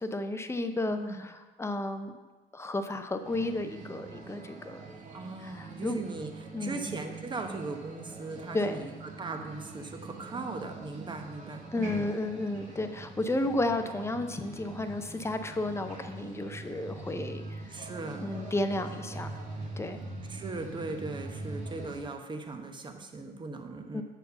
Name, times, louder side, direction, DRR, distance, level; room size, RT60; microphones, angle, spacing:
voice 1, 0.0-1.3 1.6-2.1 2.5-4.8 5.4-6.0 6.5-7.0 8.5-8.8 11.7-17.6 18.2-19.3 19.8-20.0 23.9-24.0, left 2 dB, 15° left, 7 dB, 0.6 m, -32 dB
sound 1, 3.2-22.0, right 3 dB, 45° right, 1.7 m, -43 dB
voice 2, 5.1-12.1 17.7-18.3 20.3-24.0, right 3 dB, 25° right, 5 dB, 1.0 m, -39 dB
7.1 x 4.4 x 6.7 m, 1.2 s
cardioid pair, 110°, 17 cm